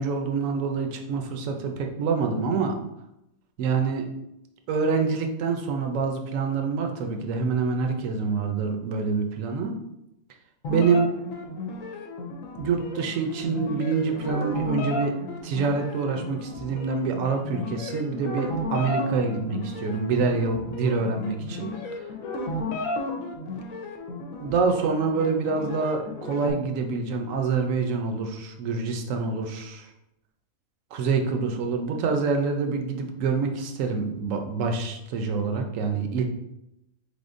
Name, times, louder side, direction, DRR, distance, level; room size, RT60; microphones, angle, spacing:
voice 1, 0.0-2.8 3.6-4.0 4.7-9.8 10.7-11.1 12.6-15.1 15.4-21.7 24.4-29.9 30.9-36.2, right 4 dB, 70° right, 4 dB, 0.9 m, -26 dB
sound 1, 10.6-26.5, left 2 dB, 75° left, 1.0 m, -34 dB
4.0 x 3.5 x 2.5 m, 0.86 s
omnidirectional pair, 1.5 m